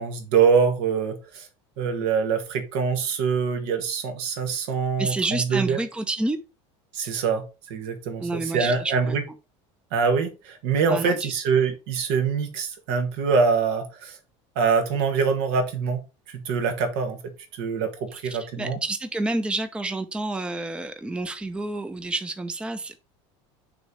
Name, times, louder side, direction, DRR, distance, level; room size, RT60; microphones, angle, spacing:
voice 1, 0.0-1.5 1.8-5.8 6.9-9.2 9.9-14.2 14.5-18.8, right 5 dB, 70° right, 1.6 m, -24 dB
voice 2, 5.0-6.4 8.2-9.2 10.9-11.3 18.1-23.0, right 2 dB, 5° right, 0.6 m, -29 dB
6.1 x 3.2 x 4.8 m
supercardioid pair, 120°, 15 cm